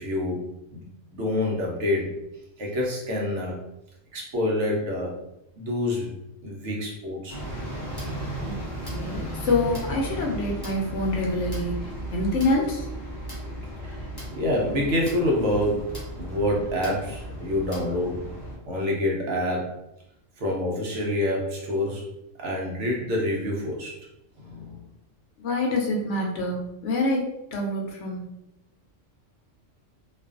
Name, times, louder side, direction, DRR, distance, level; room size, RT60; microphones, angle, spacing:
voice 1, 0.0-2.2 2.6-3.6 4.1-5.2 5.5-6.2 6.4-7.4 13.8-18.3 18.7-19.7 20.4-22.0 22.4-24.1 24.4-24.8, left 1 dB, 70° right, -2 dB, 1.0 m, -27 dB
sound 1, 7.3-18.6, right 1 dB, 30° left, 0.5 m, -35 dB
voice 2, 8.9-12.9 25.4-26.6 26.8-28.2, left 2 dB, 70° left, 0 dB, 0.9 m, -26 dB
2.5 x 2.3 x 2.4 m, 0.86 s
omnidirectional pair, 1.3 m